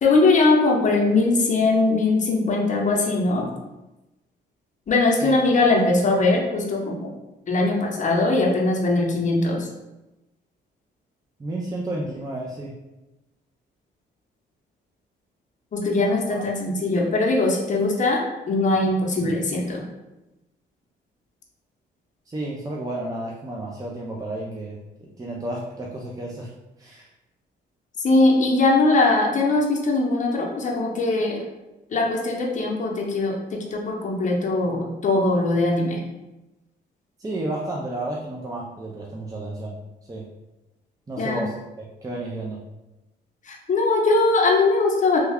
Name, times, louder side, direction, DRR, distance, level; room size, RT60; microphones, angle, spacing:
voice 1, 0.0-3.5 4.9-7.1 7.5-9.7 15.7-19.8 28.0-31.4 31.9-33.4 33.7-36.0 41.2-41.4 43.5-45.2, left 2 dB, 40° left, -1 dB, 0.8 m, -21 dB
voice 2, 11.4-12.7 16.3-16.5 22.3-24.8 25.2-26.5 26.8-27.1 37.2-39.7 40.1-40.2 41.1-42.6, right 1 dB, 20° right, -3 dB, 0.5 m, -31 dB
3.2 x 2.3 x 3.5 m, 1.0 s
cardioid pair, 90°, 20 cm